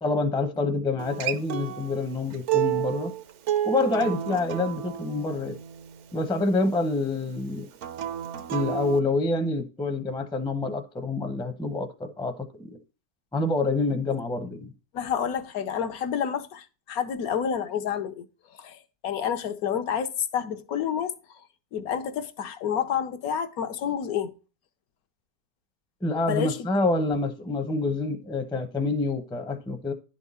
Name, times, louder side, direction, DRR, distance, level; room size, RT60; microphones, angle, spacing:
voice 1, 0.0-3.1 3.6-5.5 6.1-7.7 8.5-12.8 13.3-14.7 26.0-29.9, left 3 dB, 5° left, 0.5 m, -27 dB
Acoustic guitar, 1.0-6.2 7.7-9.0, right 12 dB, 65° right, 0.8 m, -31 dB
voice 2, 14.9-18.2 18.6-21.4 21.7-24.3 26.3-26.6, left 8 dB, 75° left, 1.2 m, -29 dB
10.5 x 4.5 x 4.1 m
omnidirectional pair, 1.6 m